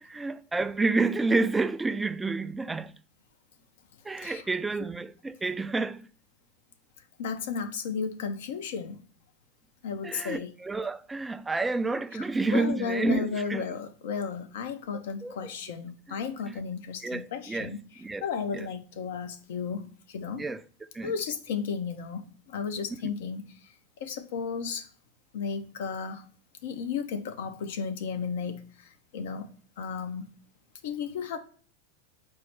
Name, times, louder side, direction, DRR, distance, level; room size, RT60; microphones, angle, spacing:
voice 1, 0.0-2.9 4.0-6.0 10.0-13.6 15.2-15.3 16.5-16.6 17.0-17.7 18.0-18.2 20.4-20.6 20.9-21.1 23.0-23.1, right 3 dB, 15° right, 0.3 m, -29 dB
voice 2, 7.2-9.0 9.8-10.5 12.1-12.2 12.5-17.8 18.2-20.4 21.0-23.7 24.0-24.9 25.3-26.3 26.6-30.3 30.8-31.4, left 6 dB, 70° left, 0.6 m, -34 dB
4.6 x 2.0 x 4.5 m
hypercardioid pair, 90°, 0 cm